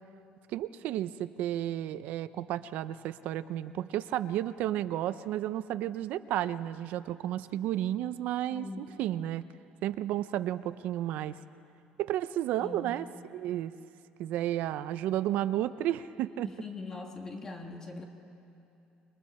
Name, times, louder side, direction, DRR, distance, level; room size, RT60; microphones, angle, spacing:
voice 1, 0.5-9.4 9.8-11.3 12.0-13.1 13.3-13.7 14.2-16.5, right 12 dB, 65° right, 13 dB, 0.6 m, -32 dB
voice 2, 8.5-8.8 12.6-12.9 16.4-18.0, left 3 dB, 20° left, 3 dB, 1.6 m, -41 dB
28.0 x 22.0 x 4.3 m, 2.8 s
cardioid pair, 170°, 3 cm